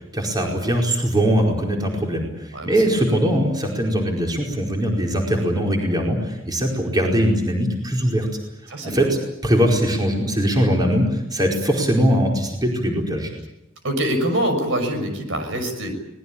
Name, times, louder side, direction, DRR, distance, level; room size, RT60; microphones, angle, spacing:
voice 1, 0.1-8.3 8.8-9.1 9.4-13.3, equal, 20° right, 1 dB, 4.8 m, -21 dB
voice 2, 2.5-3.2 8.0-8.2 8.7-9.1 13.8-15.9, right 1 dB, 70° right, 7 dB, 6.2 m, -25 dB
24.5 x 20.5 x 8.7 m, 0.88 s
head